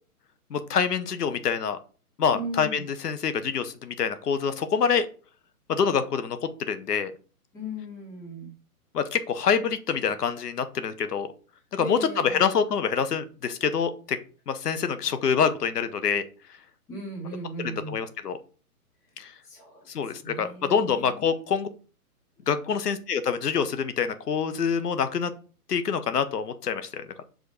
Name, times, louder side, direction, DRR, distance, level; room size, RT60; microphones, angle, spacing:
voice 1, 0.5-1.8 2.2-5.1 5.7-7.1 8.9-11.3 11.7-14.2 14.5-16.2 17.6-18.4 19.2-19.3 19.9-21.7 22.5-25.3 25.7-27.1, left 6 dB, 80° left, 11 dB, 1.0 m, -26 dB
voice 2, 2.3-2.9 7.5-8.5 11.8-12.5 16.9-18.0 19.4-21.2, equal, 5° left, -1 dB, 0.8 m, -37 dB
5.1 x 3.9 x 5.1 m, 0.39 s
hypercardioid pair, 160°, 46 cm